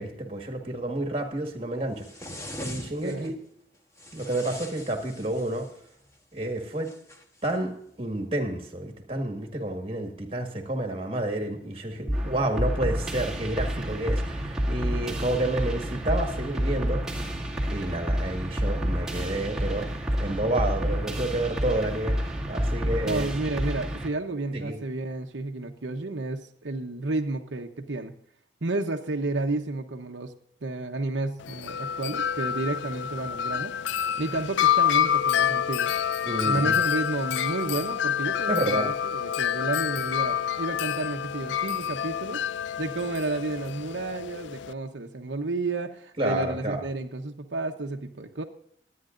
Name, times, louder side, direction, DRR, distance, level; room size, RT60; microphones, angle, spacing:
voice 1, 0.0-2.0 2.6-3.3 4.1-5.7 6.3-6.9 7.4-17.3 17.7-22.2 22.5-23.3 24.5-24.8 36.3-36.8 38.5-38.9 46.2-46.8, right 1 dB, 30° right, 3 dB, 1.8 m, -30 dB
sound 1, 2.0-3.3 4.0-5.8 6.8-7.6, left 1 dB, 15° left, 1.2 m, -41 dB
voice 2, 3.0-3.3 23.0-28.1 28.6-30.3 30.6-33.7 34.2-35.9 36.4-42.4 42.8-48.4, right 2 dB, 85° right, 3 dB, 1.0 m, -31 dB
sound 2, 12.1-24.1, equal, 5° right, 2.2 m, -29 dB
Wind chime, 31.4-44.7, left 9 dB, 80° left, 0.4 m, -27 dB
23.5 x 9.7 x 2.6 m, 0.67 s
head